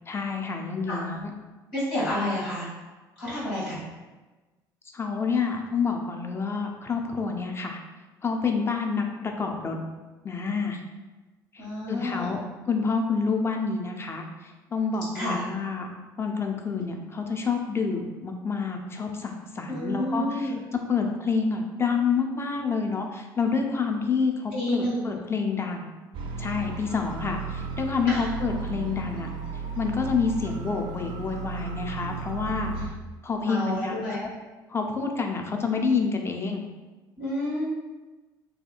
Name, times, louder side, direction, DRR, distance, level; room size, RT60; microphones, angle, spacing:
voice 1, 0.1-1.3 4.9-7.8 8.2-9.8 10.2-10.8 11.5-12.4 12.7-15.9 16.2-20.5 20.9-25.9 26.4-29.3 29.7-32.7 33.2-34.3 34.7-36.6, left 5 dB, 20° left, 3 dB, 0.4 m, -28 dB
voice 2, 1.7-2.7 3.2-3.8 11.6-12.3 15.1-15.4 19.7-20.6 24.5-25.2 28.1-28.2 32.7-32.9 33.4-34.2 37.2-37.6, left 1 dB, 75° left, -10 dB, 1.4 m, -29 dB
sound 1, 26.1-32.9, right 4 dB, 50° right, 0.3 m, -35 dB
2.7 x 2.2 x 2.4 m, 1.2 s
figure-of-eight pair, 55°, 11 cm